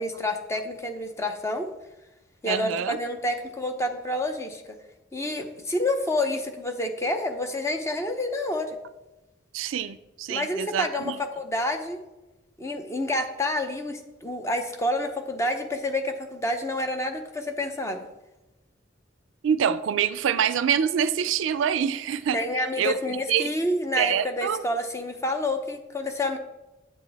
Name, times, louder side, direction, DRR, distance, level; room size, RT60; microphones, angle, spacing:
voice 1, 0.0-1.7 2.4-4.6 5.1-8.8 10.3-12.0 12.6-18.1 22.3-26.4, left 1 dB, 15° left, 5 dB, 0.7 m, -28 dB
voice 2, 2.5-3.0 9.5-11.2 19.4-22.4 22.8-23.0 23.3-23.5 24.0-24.6, right 8 dB, 75° right, 14 dB, 0.4 m, -25 dB
8.0 x 7.5 x 3.4 m, 1.0 s
head